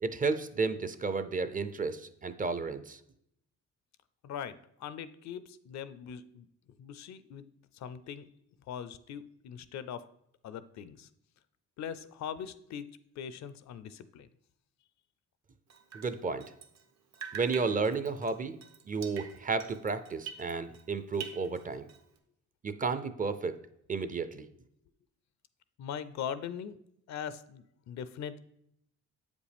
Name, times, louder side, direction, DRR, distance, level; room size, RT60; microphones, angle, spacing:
voice 1, 0.0-3.0 15.9-16.4 17.3-18.6 18.9-21.9 22.6-23.5 23.9-24.5, right 4 dB, 25° right, 11 dB, 0.5 m, -32 dB
voice 2, 4.2-6.5 6.8-7.4 7.7-8.3 8.7-10.0 10.4-11.1 11.8-12.9 13.2-14.3 25.8-26.8 27.1-28.4, left 8 dB, 65° left, 14 dB, 0.5 m, -41 dB
Drip, 15.7-16.9 17.1-20.9 21.1-22.2, right 7 dB, 60° right, 0.8 m, -46 dB
7.7 x 5.1 x 3.4 m, 0.74 s
cardioid pair, 90°, 30 cm